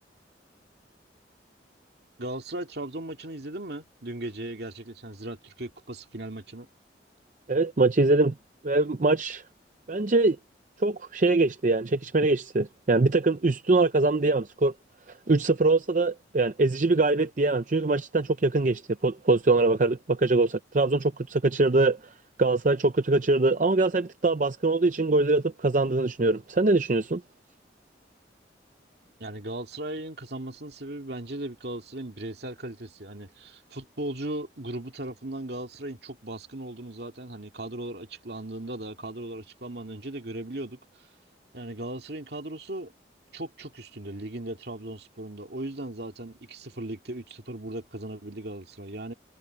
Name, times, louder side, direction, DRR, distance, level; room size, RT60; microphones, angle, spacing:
voice 1, 2.2-6.7 29.2-40.8 41.5-42.9 43.3-49.1, right 1 dB, 60° right, 2.3 m, -37 dB
voice 2, 7.5-8.3 8.6-9.4 9.9-10.4 10.8-14.7 15.3-22.0 22.4-27.2, right 2 dB, 45° right, 0.6 m, -23 dB
head